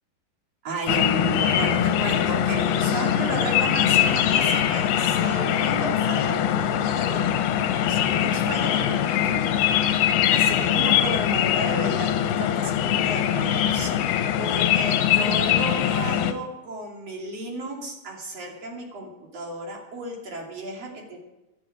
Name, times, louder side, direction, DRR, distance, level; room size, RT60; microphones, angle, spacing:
voice 1, 0.6-7.4 7.7-21.2, right 2 dB, 45° right, 0 dB, 3.6 m, -34 dB
sound 1, 0.9-16.3, left 10 dB, 85° left, 2.9 m, -22 dB
17.0 x 11.0 x 4.9 m, 1.0 s
omnidirectional pair, 4.4 m